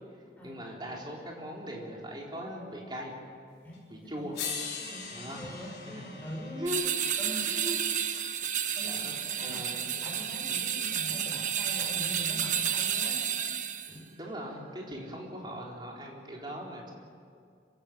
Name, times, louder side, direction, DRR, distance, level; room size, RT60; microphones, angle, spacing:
voice 1, 0.4-3.1 3.9-4.4 5.1-5.5 5.8-6.0 6.6-6.9 7.5-8.3 8.8-9.2 9.4-10.1 14.2-16.9, equal, 25° right, -2 dB, 4.1 m, -40 dB
voice 2, 3.6-4.3 4.8-6.6 7.2-7.6 8.7-9.7 10.0-13.2 13.9-14.1, equal, 10° left, -3 dB, 6.4 m, -43 dB
sound 1, 3.7-3.8 4.3-8.5 9.9-10.0, left 6 dB, 60° left, 4.5 m, -42 dB
sound 2, 6.7-14.0, right 8 dB, 45° right, 1.2 m, -31 dB
26.0 x 16.0 x 8.8 m, 2.3 s
head